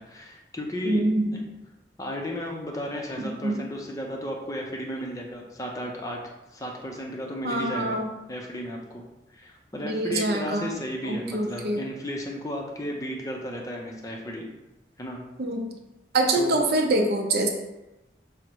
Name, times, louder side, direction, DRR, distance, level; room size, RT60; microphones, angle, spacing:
voice 1, 0.0-1.4 2.0-6.2 6.5-8.0 8.3-9.0 9.3-14.5 15.0-15.2 16.4-16.6, equal, 20° left, 0 dB, 0.5 m, -34 dB
voice 2, 0.8-1.4 3.2-3.6 7.4-8.1 9.8-10.7 11.0-11.8 15.4-15.7 16.1-17.5, right 2 dB, 60° right, 3 dB, 0.6 m, -25 dB
5.0 x 2.1 x 4.5 m, 1.0 s
head